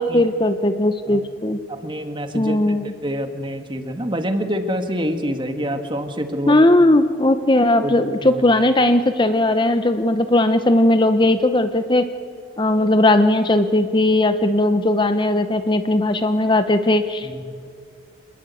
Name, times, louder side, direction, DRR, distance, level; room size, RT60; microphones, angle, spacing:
voice 1, 0.0-1.6 2.3-2.9 6.5-12.0 12.6-17.3, left 1 dB, 25° left, 9 dB, 0.8 m, -18 dB
voice 2, 1.7-6.6 7.8-7.9 8.2-8.4 17.2-17.5, equal, 25° right, 7 dB, 1.7 m, -26 dB
26.5 x 20.5 x 8.4 m, 2.2 s
head